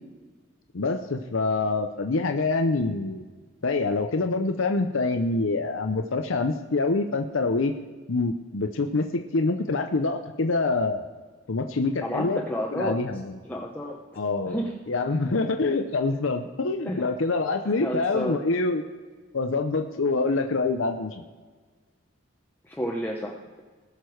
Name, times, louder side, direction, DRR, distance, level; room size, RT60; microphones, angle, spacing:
voice 1, 0.7-3.2 3.6-7.7 8.1-11.1 11.5-12.4 12.7-13.4 14.2-14.6 14.9-18.8 19.3-21.2, left 3 dB, 80° left, 5 dB, 0.7 m, -26 dB
voice 2, 12.0-13.0 13.4-14.0 14.5-14.7 16.9-17.0 17.8-18.4 22.6-23.6, equal, 10° left, -2 dB, 0.9 m, -30 dB
19.5 x 6.7 x 4.6 m, 1.4 s
head